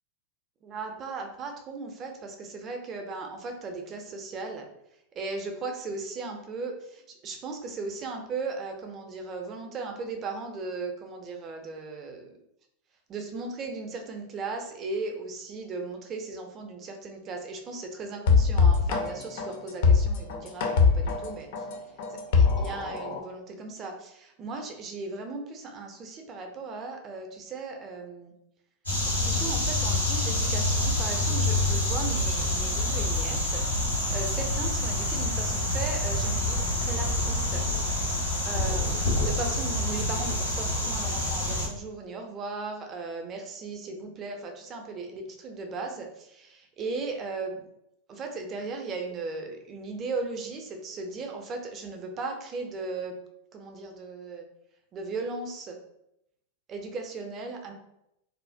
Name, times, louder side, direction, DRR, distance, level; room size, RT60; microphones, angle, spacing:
voice 1, 0.6-4.7 5.1-12.3 13.1-21.5 22.1-28.3 29.2-37.6 38.4-47.7 48.1-53.2 53.5-54.4 54.9-55.8 56.7-57.7, right 3 dB, 30° right, 3 dB, 0.4 m, -37 dB
sound 1, 18.3-23.2, left 5 dB, 50° left, 0.4 m, -22 dB
sound 2, 28.9-41.7, left 1 dB, 85° left, 0.9 m, -27 dB
2.4 x 2.0 x 2.5 m, 0.81 s
figure-of-eight pair, 90°, 0 cm